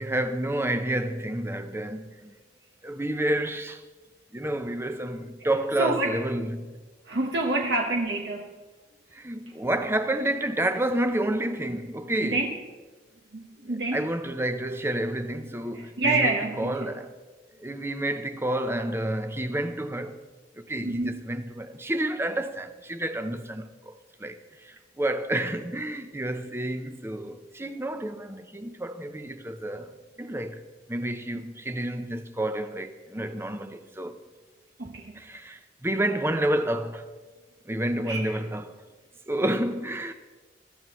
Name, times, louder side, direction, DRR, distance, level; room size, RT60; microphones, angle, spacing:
voice 1, 0.0-2.3 2.8-3.8 4.3-6.8 9.1-12.4 13.7-17.1 17.6-20.2 20.6-23.9 24.2-29.9 30.2-30.6 30.9-34.2 35.1-37.0 37.7-38.7 39.3-40.1, right 1 dB, 15° right, 0.7 m, -29 dB
voice 2, 5.8-6.2 7.1-8.5 12.2-12.6 13.3-14.0 15.7-16.9 20.8-21.1 31.3-31.4 34.8-35.1 38.0-38.4, right 2 dB, 65° right, 1.2 m, -28 dB
23.5 x 13.5 x 3.1 m
head